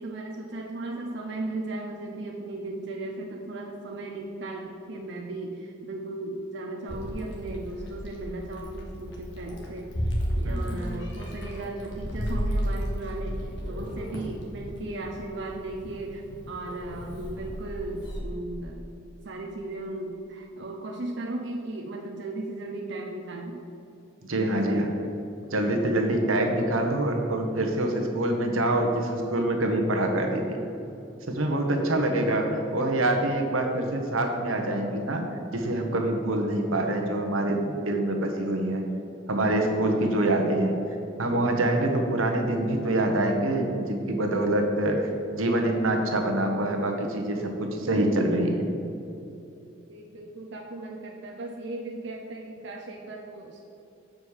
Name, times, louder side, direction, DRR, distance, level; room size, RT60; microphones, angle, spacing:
voice 1, 0.0-18.8 19.2-23.6 24.4-24.9 31.6-32.2 49.9-53.6, right 2 dB, 55° right, -1 dB, 0.6 m, -36 dB
Meow, 6.9-18.2, equal, 55° left, 1.6 m, -33 dB
voice 2, 10.4-10.8 24.3-24.9 25.5-30.6 31.3-35.3 35.5-38.8 39.3-40.7 41.2-48.7, right 1 dB, 85° right, 3 dB, 1.1 m, -25 dB
7.1 x 5.2 x 6.5 m, 2.8 s
head